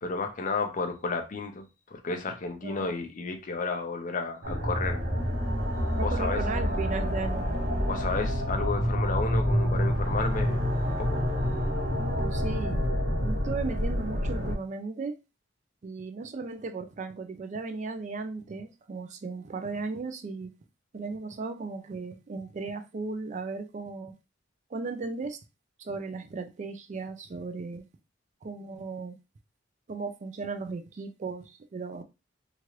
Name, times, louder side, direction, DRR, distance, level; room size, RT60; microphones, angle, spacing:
voice 1, 0.0-5.0 5.7-6.4 7.9-11.2, left 3 dB, 45° left, 0.6 m, -32 dB
sound 1, 4.4-14.6, equal, 60° right, 0.7 m, -28 dB
voice 2, 6.0-7.5 12.0-12.8 13.1-15.1 15.8-20.5 20.9-24.1 24.7-25.4 25.8-27.8 28.4-29.2 29.9-32.0, right 4 dB, 40° right, 0.4 m, -36 dB
3.0 x 2.4 x 2.9 m
head